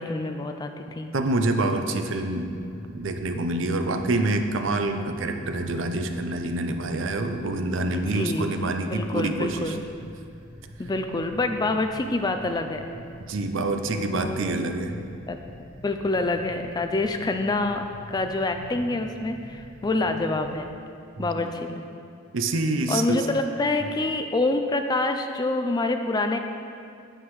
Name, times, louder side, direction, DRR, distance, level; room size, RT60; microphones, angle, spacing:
voice 1, 0.0-1.1 7.9-8.6 8.9-9.8 10.8-12.8 14.1-14.4 15.2-15.4 15.8-20.7 21.2-21.9 22.9-26.4, left 2 dB, 20° left, 6 dB, 0.3 m, -26 dB
voice 2, 1.1-2.5 2.9-9.8 13.3-15.0 21.2-21.5 22.3-23.3 23.8-23.9, right 2 dB, 60° right, 6 dB, 0.6 m, -26 dB
sound 1, 2.3-20.6, equal, 45° right, 1.3 m, -45 dB
9.4 x 8.8 x 3.2 m, 2.4 s
head